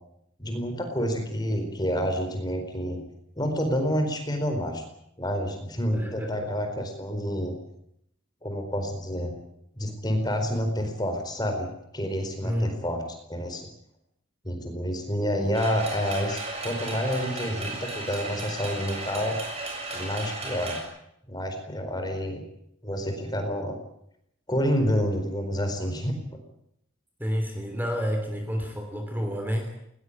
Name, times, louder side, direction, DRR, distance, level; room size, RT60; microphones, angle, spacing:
voice 1, 0.4-3.0 3.4-4.8 5.2-7.6 8.4-9.3 9.8-13.0 13.3-13.6 14.4-19.4 19.9-20.8 21.3-22.4 22.8-23.8 24.5-26.2, equal, 20° left, 5 dB, 4.4 m, -28 dB
voice 2, 5.9-6.5 12.4-12.8 27.2-29.7, equal, 10° right, 4 dB, 3.1 m, -29 dB
sound 1, 15.5-20.8, right 2 dB, 30° right, 7.0 m, -35 dB
20.5 x 20.0 x 8.8 m, 0.75 s
head